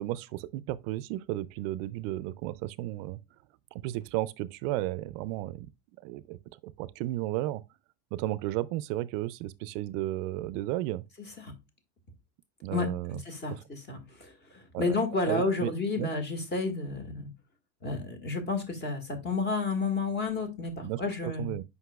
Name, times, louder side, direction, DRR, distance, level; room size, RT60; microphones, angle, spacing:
voice 1, 0.0-3.2 3.7-5.7 6.0-7.6 8.1-11.0 12.6-13.2 13.5-13.6 14.7-15.0 15.3-15.7 16.0-16.1 20.8-21.6, right 16 dB, 65° right, 0.5 m, -33 dB
voice 2, 12.7-17.3 17.8-21.5, left 3 dB, 25° left, 1.7 m, -31 dB
7.9 x 5.4 x 2.3 m
cardioid pair, 150°, 41 cm